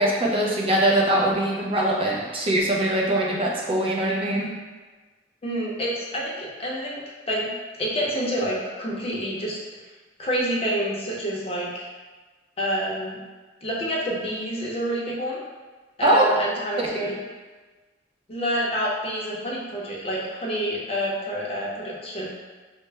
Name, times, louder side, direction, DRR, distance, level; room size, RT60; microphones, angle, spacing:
voice 1, 0.0-4.5 16.0-16.2 17.0-17.1, right 1 dB, 30° right, -3 dB, 0.5 m, -22 dB
voice 2, 5.4-7.0 7.3-7.5 7.8-9.6 10.2-11.9 12.6-13.2 13.6-15.4 16.0-17.2 18.3-22.3, equal, 35° left, -4 dB, 0.6 m, -28 dB
3.3 x 2.1 x 3.2 m, 1.3 s
head